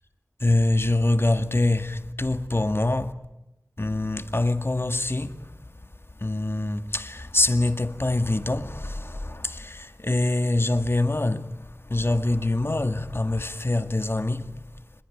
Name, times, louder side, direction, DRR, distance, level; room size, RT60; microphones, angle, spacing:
voice 1, 0.4-3.1 3.8-5.5 6.2-14.6, left 2 dB, 45° left, 1.9 m, -25 dB
27.5 x 21.5 x 8.8 m
wide cardioid pair, 45°, 6 cm